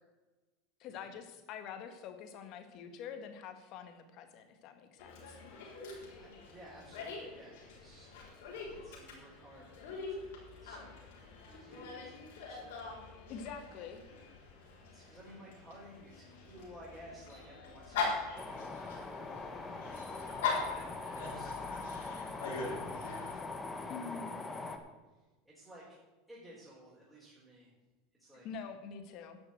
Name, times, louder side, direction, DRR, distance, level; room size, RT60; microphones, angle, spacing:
voice 1, 0.8-5.4 13.3-14.0 23.9-24.3 28.4-29.4, left 6 dB, 55° left, 8 dB, 1.6 m, -46 dB
Dog, 5.0-23.3, left 4 dB, 80° left, 4.0 m, -42 dB
voice 2, 6.1-8.1 8.4-11.1 11.5-13.0 14.9-19.8 20.2-21.9 22.5-24.8 25.1-26.0 26.3-27.7 28.2-28.5, equal, 5° right, -8 dB, 4.4 m, -56 dB
sound 1, 18.4-24.8, left 3 dB, 20° left, 1.3 m, -42 dB
10.5 x 6.2 x 7.9 m, 1.2 s
supercardioid pair, 110°, 0 cm